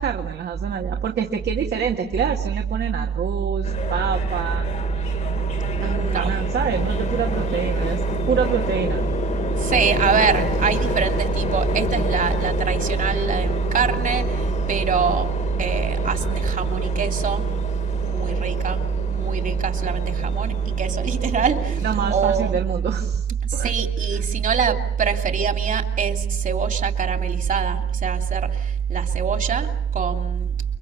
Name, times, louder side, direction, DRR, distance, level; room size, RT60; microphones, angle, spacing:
voice 1, 0.0-4.7 5.8-9.1 21.8-23.3 23.5-23.7, right 7 dB, 75° right, 3 dB, 1.9 m, -26 dB
sound 1, 3.6-22.5, left 5 dB, 45° left, 1.7 m, -29 dB
voice 2, 5.8-6.3 6.9-7.0 9.6-15.3 15.6-17.4 18.0-18.8 19.1-22.6 23.6-30.5, right 7 dB, 50° right, 5 dB, 2.9 m, -22 dB
29.5 x 24.0 x 6.9 m, 0.75 s
wide cardioid pair, 150°, 18 cm